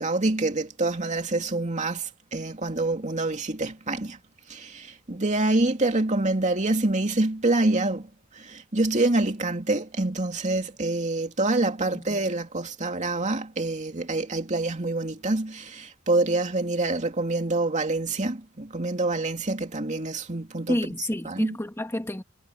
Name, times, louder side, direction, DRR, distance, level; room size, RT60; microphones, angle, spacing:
voice 1, 0.0-4.2 4.5-8.1 8.3-20.8 21.2-21.6, right 2 dB, 35° right, 2.6 m, -26 dB
voice 2, 20.7-22.2, left 1 dB, 10° left, 2.0 m, -29 dB
head